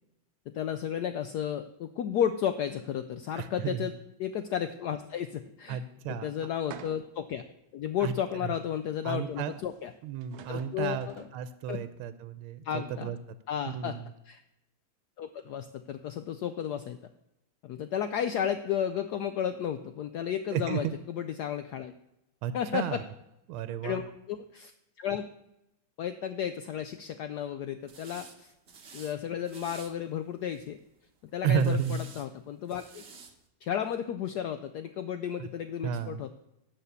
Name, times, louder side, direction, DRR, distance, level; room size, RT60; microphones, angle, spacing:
voice 1, 0.5-3.9 4.2-5.8 6.1-7.4 7.7-9.9 10.5-11.0 11.7-11.8 12.6-13.1 13.5-13.9 14.3-14.4 15.2-17.0 17.6-21.9 22.5-23.0 23.8-24.0 24.3-24.7 25.0-25.3 26.0-28.5 28.9-30.8 31.3-33.0 33.6-36.3, left 9 dB, 80° left, 10 dB, 0.9 m, -33 dB
voice 2, 3.4-3.9 5.7-6.3 8.0-8.5 9.0-9.6 10.0-13.2 13.7-14.1 20.5-20.9 22.4-23.0 23.5-24.0 31.4-32.0 35.4-35.5 35.8-36.2, right 8 dB, 90° right, 13 dB, 1.4 m, -32 dB
sound 1, 6.7-7.3 7.9-8.0 9.8-9.9 10.2-11.4, right 9 dB, 65° right, 0.9 m, -47 dB
sound 2, 27.9-28.3 28.7-29.1 29.4-29.9 30.4-30.8 31.6-32.2 32.6-33.3, right 5 dB, 40° right, 1.1 m, -50 dB
12.5 x 4.1 x 8.1 m, 0.87 s
omnidirectional pair, 2.3 m